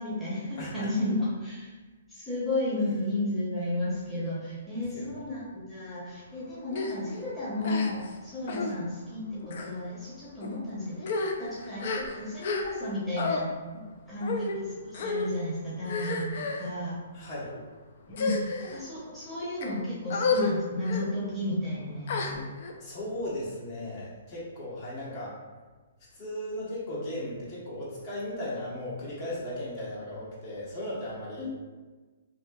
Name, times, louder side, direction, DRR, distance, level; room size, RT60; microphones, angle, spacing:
voice 1, 0.0-1.7 2.1-13.5 14.1-17.0 18.1-22.5 31.4-31.5, left 1 dB, ahead, -10 dB, 0.8 m, -33 dB
voice 2, 0.6-0.9 4.9-5.1 17.1-17.5 22.8-25.4 26.1-31.5, left 1 dB, 40° left, -7 dB, 1.1 m, -36 dB
sound 1, 6.7-6.9 7.6-8.1 8.5-8.7 9.4-9.7 10.4-10.6 11.0-12.9 13.2-13.4 14.2-14.6 14.9-15.3 15.8-16.7 17.4-17.6 18.1-18.8 19.4-19.7 20.1-20.5 20.8-21.1 22.1-22.7, left 3 dB, 55° left, 0.3 m, -31 dB
2.9 x 2.6 x 2.3 m, 1.3 s
hypercardioid pair, 135°, 0 cm